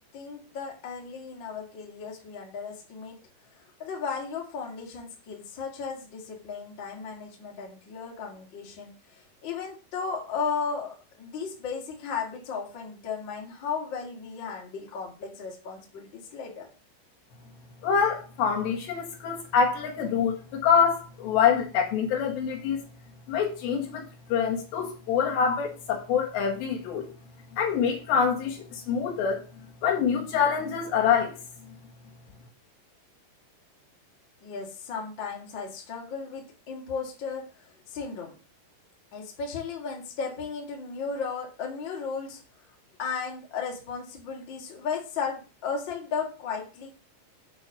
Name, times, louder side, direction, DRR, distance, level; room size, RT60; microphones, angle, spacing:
voice 1, 0.1-3.2 3.8-8.9 9.4-16.7 34.4-38.3 39.1-42.4 43.0-46.9, left 5 dB, 35° left, 2.1 m, -35 dB
voice 2, 17.8-22.8 23.3-27.1 27.5-29.4 29.8-31.4, left 7 dB, 75° left, 3.5 m, -25 dB
8.0 x 4.4 x 6.1 m
omnidirectional pair, 5.1 m